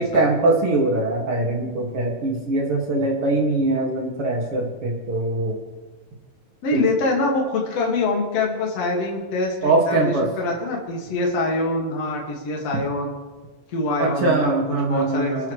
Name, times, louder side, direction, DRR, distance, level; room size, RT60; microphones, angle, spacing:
voice 1, 0.0-5.6 9.6-10.3 14.0-15.5, right 2 dB, 45° right, -1 dB, 3.0 m, -22 dB
voice 2, 6.6-13.1 13.7-14.5 14.9-15.5, left 2 dB, 50° left, -2 dB, 3.2 m, -24 dB
26.0 x 13.5 x 3.3 m, 1.3 s
omnidirectional pair, 3.9 m